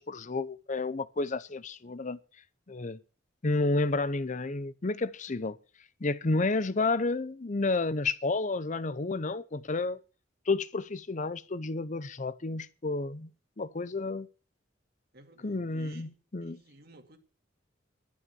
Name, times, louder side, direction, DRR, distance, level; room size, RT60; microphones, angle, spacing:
voice 1, 0.0-2.2 2.7-3.0 3.4-5.6 6.0-10.0 10.5-13.3 13.6-14.3 15.4-16.6, left 3 dB, 40° left, 0.7 m, -31 dB
voice 2, 15.1-16.1 16.4-17.2, right 2 dB, 55° right, 2.3 m, -54 dB
11.5 x 11.0 x 7.0 m
head